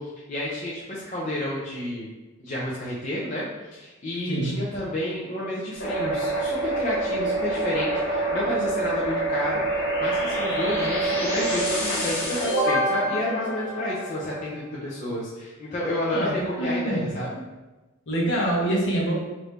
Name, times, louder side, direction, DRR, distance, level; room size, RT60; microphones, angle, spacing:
voice 1, 0.0-2.1 2.4-17.4, left 1 dB, 35° left, -7 dB, 0.4 m, -30 dB
sound 1, 5.8-14.4, right 1 dB, 75° left, 1.3 m, -26 dB
voice 2, 16.0-17.1 18.1-19.1, right 1 dB, 55° left, -3 dB, 0.8 m, -26 dB
3.2 x 2.6 x 3.2 m, 1.1 s
head